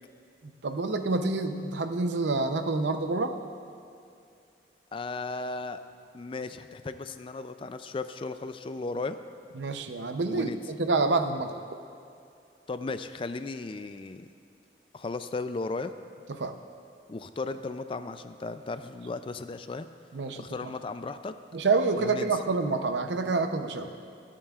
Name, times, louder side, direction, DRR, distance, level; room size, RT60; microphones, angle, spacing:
voice 1, 0.4-3.3 9.6-11.6 16.4-16.5 20.1-20.4 21.5-23.9, right 3 dB, 90° right, 7 dB, 0.7 m, -27 dB
voice 2, 4.9-5.8 6.1-9.2 10.3-10.6 12.7-14.3 14.9-15.9 17.1-19.9 20.4-21.3 22.0-22.4, left 3 dB, 30° left, 10 dB, 0.3 m, -35 dB
25.0 x 8.7 x 2.4 m, 2.5 s
head